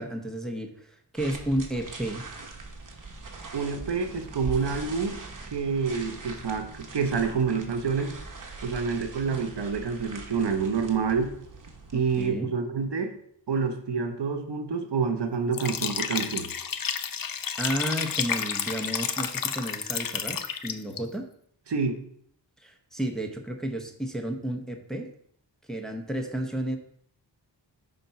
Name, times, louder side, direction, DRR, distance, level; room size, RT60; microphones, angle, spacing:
voice 1, 0.0-2.2 11.9-12.5 17.6-21.3 22.6-25.1 25.7-26.8, right 1 dB, ahead, 2 dB, 0.8 m, -32 dB
sound 1, 1.2-12.3, right 3 dB, 45° right, 1.1 m, -42 dB
voice 2, 3.5-5.2 5.5-8.1 8.6-11.3 11.9-13.1 13.5-16.5 21.7-22.0, right 5 dB, 65° right, 6 dB, 0.9 m, -28 dB
Liquid, 15.5-21.0, left 7 dB, 50° left, 0.5 m, -31 dB
5.2 x 4.0 x 5.7 m, 0.66 s
wide cardioid pair, 95°, 44 cm